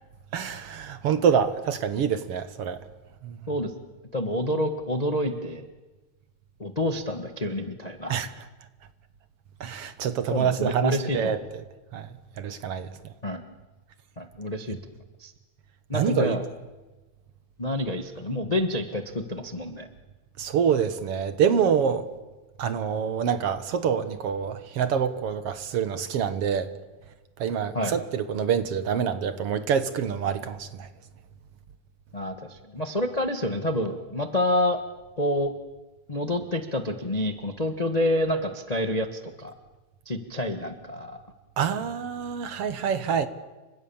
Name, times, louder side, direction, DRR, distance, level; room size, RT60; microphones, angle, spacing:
voice 1, 0.3-2.8 3.2-3.4 8.1-8.3 9.6-11.4 11.9-12.1 12.4-12.9 15.9-16.4 20.4-22.1 22.6-26.7 27.4-30.9 41.6-43.3, right 7 dB, 60° right, 2.0 m, -26 dB
voice 2, 4.1-5.7 6.6-8.2 10.3-11.3 13.2-13.4 14.2-14.8 15.2-15.3 15.9-16.4 17.6-19.9 27.7-27.9 32.1-34.8 35.2-35.5 36.1-39.5 40.0-41.2, left 1 dB, 70° left, 0.3 m, -28 dB
30.0 x 25.0 x 7.2 m
omnidirectional pair, 3.5 m